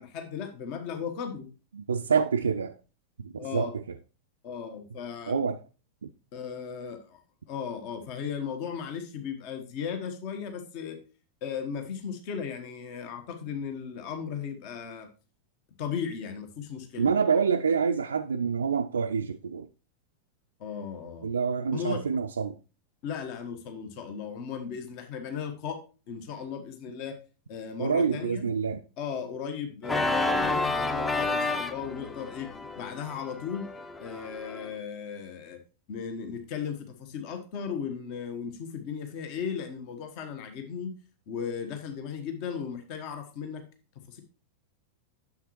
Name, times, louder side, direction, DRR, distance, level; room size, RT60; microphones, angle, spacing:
voice 1, 0.0-1.5 3.4-3.7 4.4-5.3 6.3-7.2 7.5-11.0 11.4-15.1 15.8-17.1 20.6-21.3 21.7-22.0 23.0-25.8 26.1-27.1 27.5-28.5 29.0-32.5 32.7-33.7 34.0-35.6 35.9-40.9 41.3-43.6 44.1-44.2, left 7 dB, 45° left, 1.2 m, -36 dB
voice 2, 1.7-2.8 3.2-4.0 5.3-5.6 17.0-19.7 21.2-22.6 27.8-28.8, right 6 dB, 70° right, 0.4 m, -27 dB
Organ, 29.8-34.7, left 2 dB, 15° left, 0.6 m, -30 dB
9.6 x 7.2 x 3.1 m
figure-of-eight pair, 90°, 0 cm